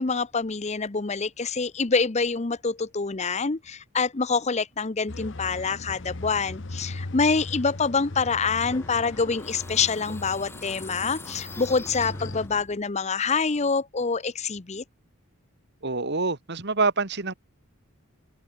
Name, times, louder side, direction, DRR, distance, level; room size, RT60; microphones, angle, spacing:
voice 1, 0.0-14.8, left 4 dB, 30° left, 0.7 m, -26 dB
sound 1, 5.1-12.5, left 2 dB, 55° left, 1.1 m, -39 dB
sound 2, 8.6-12.9, left 2 dB, 10° left, 5.0 m, -42 dB
voice 2, 15.8-17.3, right 3 dB, 50° right, 1.8 m, -26 dB
open air
head